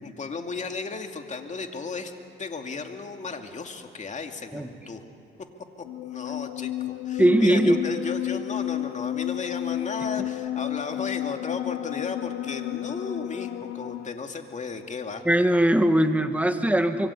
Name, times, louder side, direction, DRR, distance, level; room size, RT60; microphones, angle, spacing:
voice 1, 0.0-2.1 2.4-5.0 6.0-15.2, left 4 dB, 35° left, 5 dB, 2.4 m, -35 dB
sound 1, 5.8-14.1, left 14 dB, 90° left, 0.8 m, -31 dB
voice 2, 7.2-7.8 15.3-17.1, right 1 dB, 5° right, 7 dB, 1.7 m, -20 dB
25.5 x 23.0 x 8.4 m, 3.0 s
cardioid pair, 90°, 20 cm